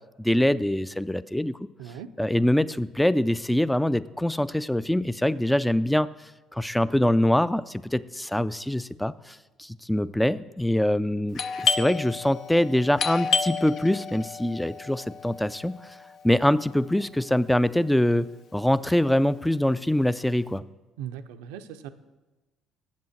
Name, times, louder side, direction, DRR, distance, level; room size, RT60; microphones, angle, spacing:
voice 1, 0.2-1.6 2.2-6.1 6.5-15.8 16.2-20.6, left 1 dB, 5° left, 17 dB, 0.4 m, -24 dB
voice 2, 1.8-2.1 21.0-21.9, right 9 dB, 75° right, 11 dB, 0.5 m, -38 dB
Doorbell, 11.4-16.8, left 5 dB, 60° left, 0.6 m, -30 dB
7.5 x 7.4 x 7.2 m, 1.1 s
hypercardioid pair, 55°, 0 cm